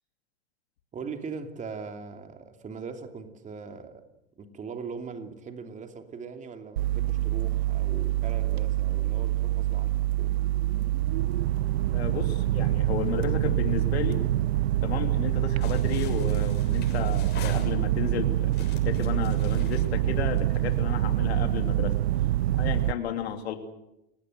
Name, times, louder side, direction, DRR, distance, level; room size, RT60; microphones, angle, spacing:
voice 1, 0.9-4.0 4.4-10.4, right 5 dB, 25° right, 2.9 m, -40 dB
sound 1, 6.8-22.9, right 14 dB, 75° right, 0.9 m, -26 dB
voice 2, 11.9-14.2 14.8-21.9 22.6-23.6, left 9 dB, 80° left, 3.2 m, -33 dB
sound 2, 15.6-18.1 18.5-20.7, left 7 dB, 30° left, 6.8 m, -46 dB
30.0 x 17.5 x 7.9 m
hypercardioid pair, 110°, 32 cm